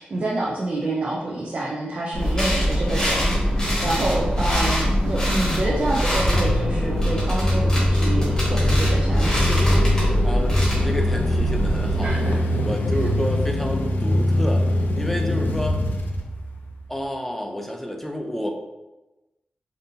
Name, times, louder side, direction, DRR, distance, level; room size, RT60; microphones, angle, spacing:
voice 1, 0.0-9.9 12.0-12.4, right 2 dB, 50° right, -5 dB, 0.6 m, -28 dB
sound 1, 2.1-12.3, equal, 25° left, 1.5 m, -23 dB
sound 2, 2.8-17.0, left 1 dB, 75° left, 0.5 m, -24 dB
voice 2, 10.2-14.6 15.0-15.8 16.9-18.5, equal, 5° left, 2 dB, 0.5 m, -30 dB
5.4 x 2.6 x 2.7 m, 1.0 s
wide cardioid pair, 130°, 3 cm